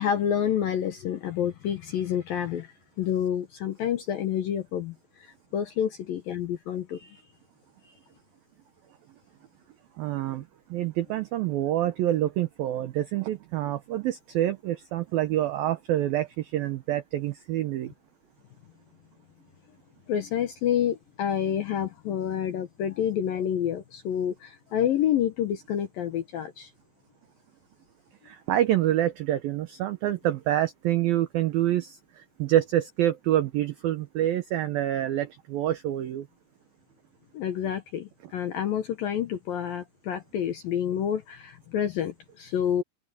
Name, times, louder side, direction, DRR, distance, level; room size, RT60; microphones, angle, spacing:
voice 1, 0.0-7.2 7.8-7.9 20.1-26.7 37.3-42.8, left 9 dB, 70° left, 2.2 m, -28 dB
voice 2, 10.0-10.4 10.7-17.9 28.2-36.3, right 13 dB, 90° right, 2.0 m, -27 dB
open air
omnidirectional pair, 5.6 m